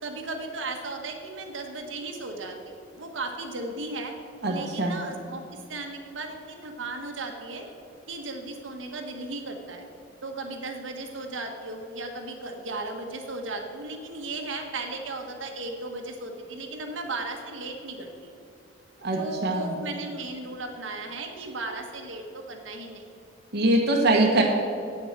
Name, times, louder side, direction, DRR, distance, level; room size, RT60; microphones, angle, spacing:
voice 1, 0.0-4.1 4.5-5.4 5.7-7.7 8.1-9.9 10.2-18.3 19.1-23.0, right 2 dB, 75° right, 3 dB, 1.3 m, -36 dB
voice 2, 4.4-4.9 19.0-19.7 23.5-24.4, right 2 dB, 60° right, 0 dB, 1.2 m, -23 dB
8.7 x 7.4 x 7.3 m, 2.7 s
head